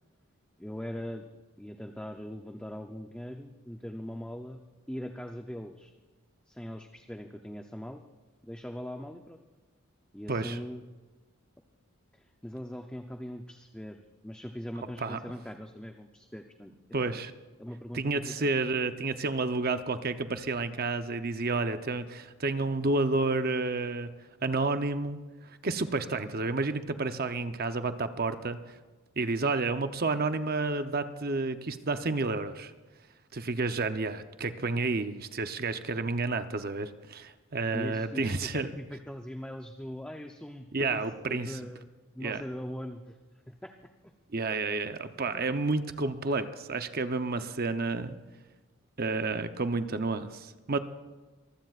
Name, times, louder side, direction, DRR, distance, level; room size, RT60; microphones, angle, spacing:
voice 1, 0.6-1.3 1.6-4.6 4.9-5.9 6.5-8.0 8.4-9.4 10.1-10.8 12.1-16.7 17.0-17.2 17.6-18.3 37.7-43.2 43.5-43.8 44.0-44.1, equal, 5° left, 4 dB, 0.6 m, -41 dB
voice 2, 16.9-17.3 17.9-24.1 24.4-25.2 25.6-28.6 29.2-32.7 33.3-38.7 40.7-41.6 42.2-42.4 44.3-48.1 49.0-50.8, right 3 dB, 45° right, 9 dB, 0.7 m, -30 dB
23.5 x 15.5 x 2.5 m, 1.2 s
head